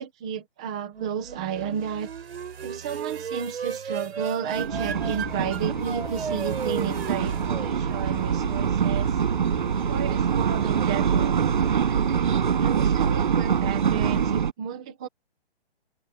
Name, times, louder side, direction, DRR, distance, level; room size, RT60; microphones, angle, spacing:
voice 1, 0.0-2.1 2.6-9.1 9.9-11.4 12.6-15.1, right 8 dB, 5° right, 0.7 m, -32 dB
sound 1, 0.9-8.6, right 6 dB, 70° right, 5.0 m, -35 dB
sound 2, 4.5-14.5, right 7 dB, 50° right, 5.6 m, -24 dB
sound 3, 4.7-14.4, left 15 dB, 25° left, 3.8 m, -41 dB
open air
hypercardioid pair, 180°, 33 cm